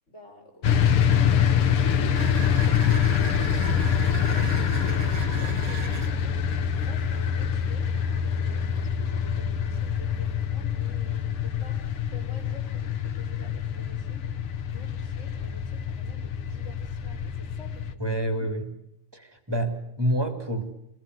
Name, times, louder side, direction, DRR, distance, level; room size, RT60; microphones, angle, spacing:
voice 1, 0.1-6.0 6.7-14.3 14.6-17.9 18.2-18.3, left 1 dB, 30° left, 2 dB, 6.3 m, -50 dB
sound 1, 0.6-17.9, left 8 dB, 90° left, 2.2 m, -25 dB
sound 2, 2.1-6.2, right 7 dB, 55° right, 2.4 m, -40 dB
voice 2, 18.0-18.7 19.1-20.7, right 1 dB, 10° right, 6 dB, 3.2 m, -28 dB
27.0 x 21.5 x 8.2 m, 0.79 s
omnidirectional pair, 2.4 m